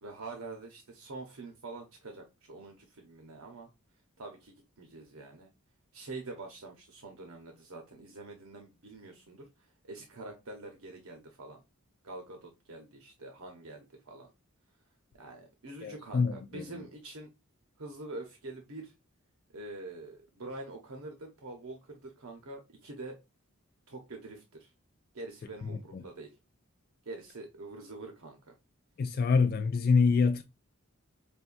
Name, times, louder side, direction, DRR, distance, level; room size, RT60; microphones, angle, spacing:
voice 1, 0.0-3.7 4.2-5.5 5.9-9.5 9.8-11.6 12.0-14.3 15.2-17.3 17.8-18.9 19.5-23.2 23.9-24.7 25.1-26.3 27.1-28.5, right 2 dB, 85° right, 0.8 m, -45 dB
voice 2, 15.8-16.8 25.6-26.0 29.0-30.4, left 5 dB, 45° left, 0.3 m, -27 dB
5.3 x 2.3 x 2.5 m
head